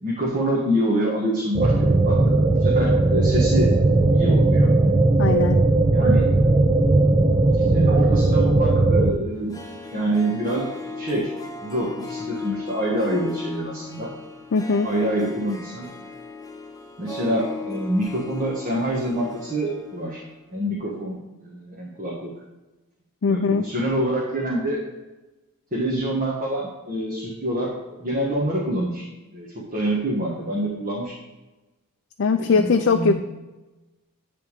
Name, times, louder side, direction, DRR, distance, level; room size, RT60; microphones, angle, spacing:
voice 1, 0.0-3.7 4.1-4.7 5.9-6.3 7.5-9.5 9.9-10.7 11.0-11.3 11.6-14.1 14.8-15.9 17.0-20.2 20.5-21.2 21.4-22.3 23.3-24.8 25.7-27.7 28.0-29.1 29.3-31.1 32.4-33.2, right 1 dB, 35° right, -3 dB, 1.3 m, -26 dB
sound 1, 1.5-9.1, right 2 dB, 20° right, 0.4 m, -18 dB
voice 2, 5.2-5.6 14.5-14.9 23.2-23.7 32.2-33.1, left 4 dB, 55° left, 5 dB, 0.4 m, -20 dB
Harp, 9.3-20.4 20.6-20.7, left 3 dB, 15° left, 0.7 m, -37 dB
10.5 x 3.5 x 6.6 m, 1.1 s
head